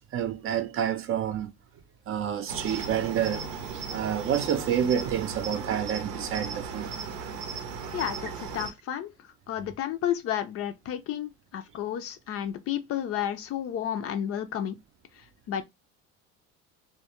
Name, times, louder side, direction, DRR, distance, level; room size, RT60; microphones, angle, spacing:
voice 1, 0.0-1.5 2.1-6.9, right 9 dB, 45° right, 0.5 m, -29 dB
Cricket, 2.5-8.7, right 5 dB, 85° right, 0.7 m, -36 dB
voice 2, 7.9-14.8 15.1-15.6, left 10 dB, 45° left, 0.4 m, -32 dB
2.2 x 2.1 x 2.8 m
supercardioid pair, 105°, 32 cm